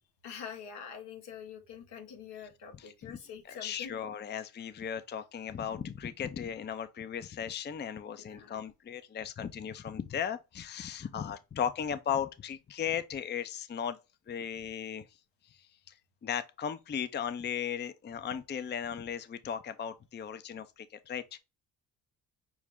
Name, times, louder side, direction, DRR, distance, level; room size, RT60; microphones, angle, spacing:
voice 1, 0.2-4.0 8.3-8.6, left 7 dB, 80° left, 1.3 m, -45 dB
voice 2, 2.8-3.2 3.4-14.0 14.3-15.1 15.4-15.9 16.2-21.4, left 8 dB, 25° left, 0.5 m, -36 dB
6.2 x 2.1 x 3.5 m
supercardioid pair, 60°, 41 cm